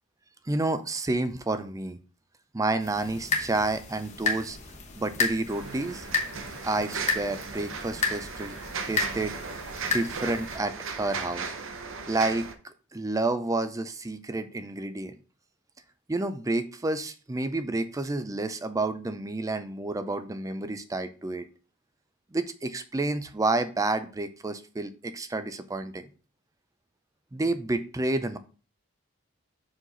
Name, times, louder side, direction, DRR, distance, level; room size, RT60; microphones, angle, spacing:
voice 1, 0.5-2.0 2.5-4.6 5.0-6.1 6.6-8.6 8.9-9.6 9.9-11.5 12.1-15.1 16.1-21.5 22.3-26.1 27.3-28.4, right 2 dB, 15° right, 11 dB, 0.4 m, -30 dB
sound 1, 2.8-10.6, left 4 dB, 35° left, 1.0 m, -33 dB
sound 2, 5.5-12.5, right 5 dB, 65° right, 0.8 m, -37 dB
5.7 x 4.9 x 3.9 m, 0.37 s
head